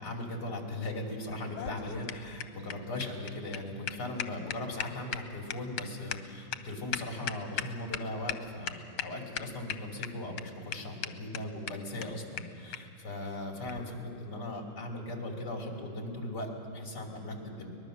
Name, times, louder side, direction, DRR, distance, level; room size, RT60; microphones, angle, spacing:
voice 1, 0.0-17.7, left 1 dB, 50° left, 1 dB, 3.4 m, -38 dB
sound 1, 1.3-8.0 8.3-8.4 8.7-9.1 9.4-10.1 10.4-10.5 10.7-10.8 11.0-11.1 11.3-11.4 11.7-11.8 12.0-12.1 12.4-12.5 12.7-12.8 13.7-13.8, left 10 dB, 90° left, 1.6 m, -36 dB
23.5 x 20.0 x 6.4 m, 3.0 s
omnidirectional pair, 2.2 m